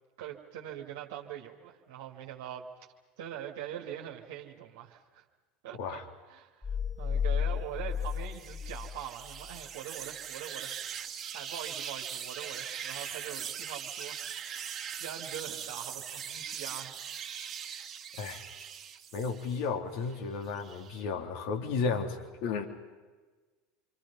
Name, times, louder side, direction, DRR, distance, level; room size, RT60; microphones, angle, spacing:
voice 1, 0.2-2.7 3.2-5.2 5.6-6.0 6.3-11.1 11.3-17.0, right 11 dB, 65° right, 0 dB, 2.2 m, -43 dB
voice 2, 5.7-6.0 18.2-18.4 19.1-22.7, left 5 dB, 60° left, 3 dB, 3.4 m, -33 dB
sound 1, 6.6-9.6, left 7 dB, 10° left, 0.9 m, -33 dB
sound 2, 8.0-19.7 20.1-21.0, right 8 dB, 35° right, 2.6 m, -41 dB
28.0 x 26.0 x 5.7 m, 1.3 s
hypercardioid pair, 75°, 0 cm